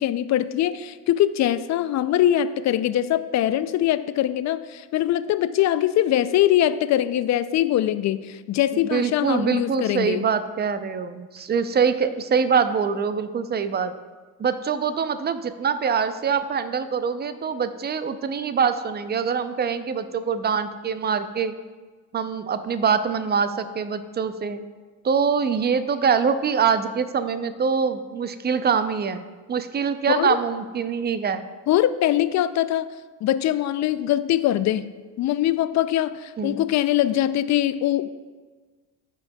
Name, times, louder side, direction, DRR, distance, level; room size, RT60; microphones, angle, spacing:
voice 1, 0.0-10.3 30.1-30.4 31.7-32.9 33.2-34.9 35.2-38.1, left 12 dB, 35° left, 13 dB, 0.5 m, -22 dB
voice 2, 8.9-13.9 14.4-21.5 22.1-24.6 25.0-31.4 36.4-36.6, right 6 dB, 20° right, 11 dB, 0.5 m, -24 dB
15.0 x 5.2 x 2.3 m, 1.4 s
hypercardioid pair, 75°, 49 cm